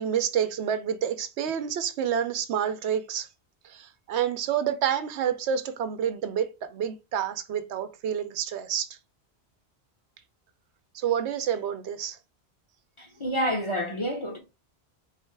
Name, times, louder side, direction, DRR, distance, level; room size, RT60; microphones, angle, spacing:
voice 1, 0.0-3.3 3.6-9.0 10.9-12.2, right 8 dB, 85° right, 0.9 m, -28 dB
voice 2, 13.0-14.4, equal, 30° left, 0.8 m, -28 dB
4.2 x 3.2 x 3.2 m
omnidirectional pair, 1.1 m